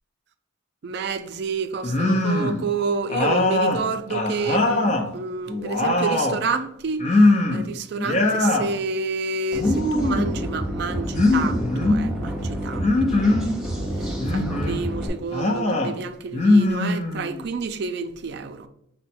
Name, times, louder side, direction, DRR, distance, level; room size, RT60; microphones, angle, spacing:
voice 1, 0.8-13.6 14.0-18.7, right 4 dB, 50° right, 0.3 m, -29 dB
sound 1, 1.8-2.6 3.1-5.1 5.5-6.4 7.0-7.7 8.0-8.7 9.5-10.3 11.1-12.0 12.8-13.5 14.2-14.8 15.3-15.9 16.3-17.4, left 2 dB, 30° left, 0.5 m, -21 dB
sound 2, 9.5-15.1, equal, ahead, 0.8 m, -29 dB
5.4 x 2.2 x 4.2 m
head